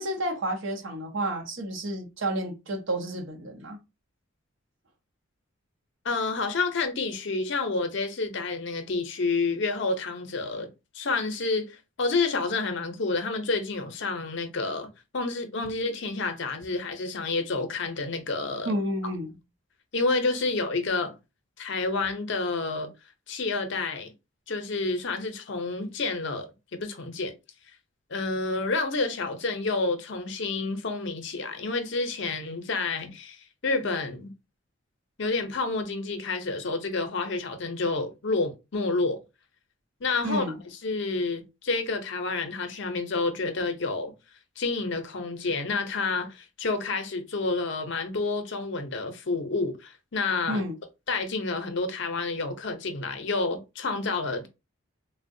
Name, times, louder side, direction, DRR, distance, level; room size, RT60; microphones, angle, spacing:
voice 1, 0.0-3.8 18.7-19.4 40.2-40.6 50.5-50.7, right 1 dB, 60° right, 0.6 m, -30 dB
voice 2, 6.0-10.7 10.9-18.7 19.9-21.2 21.6-22.9 23.3-24.1 24.5-27.3 28.1-34.3 35.2-39.2 40.0-40.4 40.8-44.1 44.6-50.6 51.1-54.5, left 3 dB, 55° left, 0.6 m, -29 dB
3.5 x 2.0 x 2.6 m
head